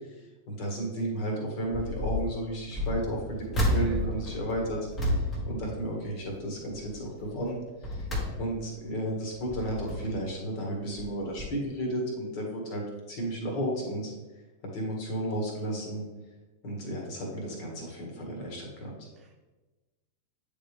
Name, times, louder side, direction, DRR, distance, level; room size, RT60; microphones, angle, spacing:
voice 1, 0.5-4.8 5.2-8.0 8.4-14.1 14.7-16.0 16.6-19.1, right 1 dB, 45° left, 0 dB, 1.6 m, -33 dB
sound 1, 1.7-2.3 2.7-6.4 6.8-7.1 7.6-8.8 9.3-10.3 11.0-11.1 11.4-11.5, equal, 20° left, 1.3 m, -31 dB
voice 2, 3.5-4.1 19.1-19.4, right 2 dB, 25° right, 0 dB, 0.8 m, -48 dB
8.8 x 3.4 x 3.4 m, 1.2 s
figure-of-eight pair, 90°, 0 cm